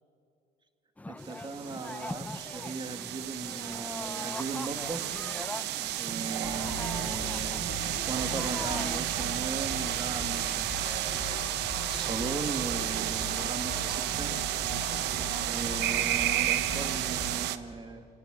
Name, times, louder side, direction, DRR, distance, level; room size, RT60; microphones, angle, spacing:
sound 1, 1.0-9.4, left 2 dB, 10° left, 0.7 m, -42 dB
voice 1, 1.1-5.2 6.0-14.4 15.5-18.1, right 3 dB, 25° right, 8 dB, 2.1 m, -38 dB
sound 2, 1.2-17.6, right 13 dB, 85° right, 1.0 m, -32 dB
sound 3, 6.4-17.3, left 4 dB, 85° left, 3.7 m, -40 dB
28.0 x 19.0 x 8.2 m, 2.5 s
cardioid pair, 110°, 17 cm